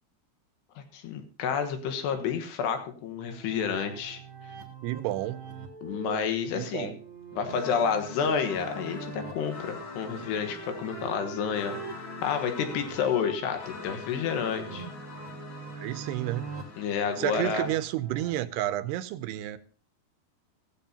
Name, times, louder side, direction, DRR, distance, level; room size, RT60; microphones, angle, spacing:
voice 1, 0.8-4.2 5.8-7.0 7.3-14.9 16.8-17.7, left 6 dB, 85° left, 3.5 m, -30 dB
sound 1, 3.3-18.3, right 5 dB, 65° right, 1.2 m, -44 dB
voice 2, 4.8-5.4 6.5-7.0 15.7-16.5 17.2-19.6, right 14 dB, 85° right, 2.7 m, -31 dB
sound 2, 7.5-17.9, left 4 dB, 50° left, 3.7 m, -43 dB
16.0 x 14.0 x 2.8 m
omnidirectional pair, 4.7 m